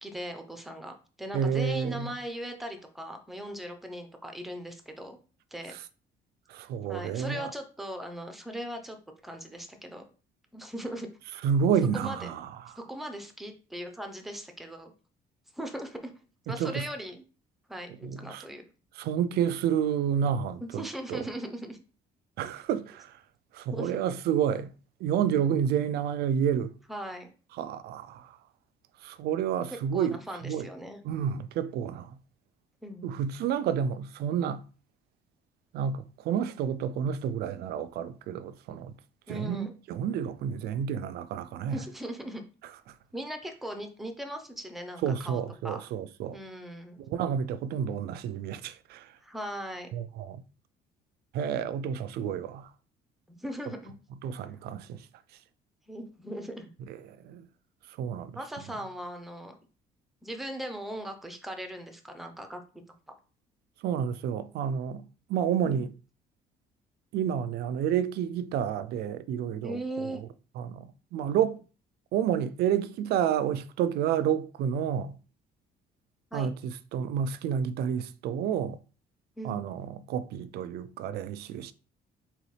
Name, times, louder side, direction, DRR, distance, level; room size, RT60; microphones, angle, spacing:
voice 1, 0.0-5.2 5.5-5.7 6.9-9.0 9.2-10.1 10.5-11.1 11.9-12.3 12.7-14.9 15.5-16.1 16.5-17.2 17.7-18.7 20.6-21.8 23.7-24.0 26.9-27.3 29.9-31.0 32.8-33.1 39.3-39.7 41.7-42.4 43.1-45.8 46.3-47.0 49.2-49.9 53.3-53.9 55.9-56.7 58.3-59.5 60.2-62.6 65.6-65.8 69.6-70.2 76.3-76.5 79.4-79.6, right 1 dB, ahead, 0.7 m, -39 dB
voice 2, 1.3-2.1 6.5-7.5 11.4-12.5 16.5-16.8 18.0-18.4 19.0-20.8 21.1-21.2 22.4-23.1 23.5-24.7 25.0-26.7 27.6-28.3 29.0-30.2 30.4-30.7 31.0-32.1 33.0-34.6 35.7-38.9 39.3-41.8 45.0-46.4 47.0-49.1 49.9-50.4 51.3-52.7 54.2-55.0 57.2-57.5 58.0-58.4 63.8-65.0 65.3-65.9 67.1-69.8 70.6-71.6 72.1-75.1 76.3-78.8 79.4-81.7, right 8 dB, 70° right, 0.4 m, -29 dB
4.0 x 3.0 x 3.3 m
cardioid pair, 110°, 17 cm